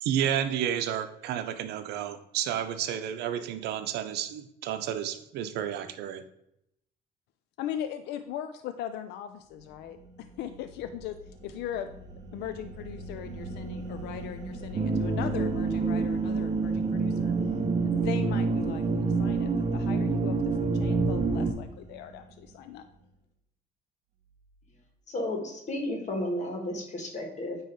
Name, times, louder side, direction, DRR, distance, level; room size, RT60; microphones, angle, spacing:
voice 1, 0.0-6.3, right 10 dB, 80° right, 0.7 m, -31 dB
voice 2, 7.6-11.2 11.4-11.9 12.3-17.3 17.8-22.8, left 10 dB, 85° left, 0.5 m, -39 dB
sound 1, 9.5-23.1, right 2 dB, 45° right, 1.7 m, -43 dB
sound 2, 14.7-21.5, right 4 dB, 30° right, 0.7 m, -27 dB
voice 3, 25.1-27.6, left 1 dB, 45° left, 1.7 m, -33 dB
9.2 x 3.1 x 4.6 m
cardioid pair, 110°, 17 cm